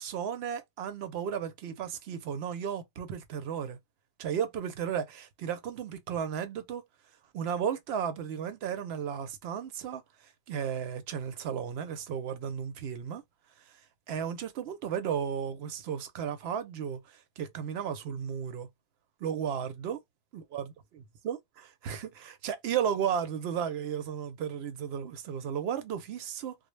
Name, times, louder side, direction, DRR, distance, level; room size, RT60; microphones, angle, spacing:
voice 1, 0.0-3.8 4.2-6.8 7.3-10.0 10.5-13.2 14.1-18.7 19.2-20.0 20.3-20.6 21.2-26.6, right 8 dB, 70° right, 0.8 m, -34 dB
2.0 x 2.0 x 3.0 m
omnidirectional pair, 1.1 m